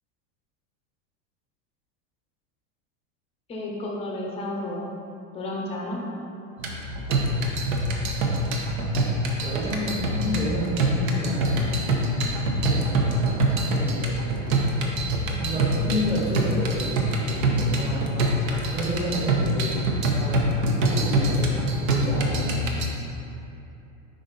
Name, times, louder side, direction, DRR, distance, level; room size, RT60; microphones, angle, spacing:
voice 1, 3.5-4.9 5.3-6.0, left 1 dB, 15° left, -2 dB, 0.5 m, -32 dB
sound 1, 6.6-22.9, right 1 dB, 80° right, 1.0 m, -25 dB
voice 2, 9.4-12.2 12.6-14.1 15.1-18.1 18.7-19.7 20.0-22.6, equal, 15° right, -5 dB, 1.0 m, -30 dB
5.3 x 5.1 x 3.9 m, 2.8 s
supercardioid pair, 160°, 40 cm